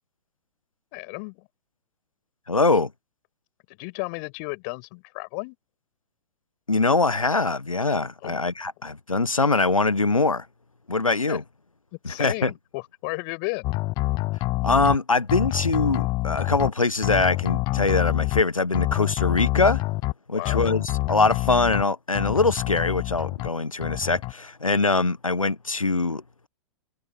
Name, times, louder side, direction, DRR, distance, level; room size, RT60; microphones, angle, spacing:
voice 1, 0.9-1.5 3.7-5.6 8.2-8.4 11.3-11.4 11.9-13.7 20.3-20.6, left 36 dB, 40° left, 6.8 m, -33 dB
voice 2, 2.5-2.9 6.7-10.4 10.9-11.4 12.0-12.5 14.6-19.8 20.3-26.5, left 3 dB, 85° left, 1.4 m, -23 dB
sound 1, 13.6-15.0 15.3-16.7 17.0-18.4 18.7-20.1 20.4-21.8 22.1-23.5 23.8-24.3, left 21 dB, 25° left, 0.4 m, -26 dB
figure-of-eight pair, 105°, 17 cm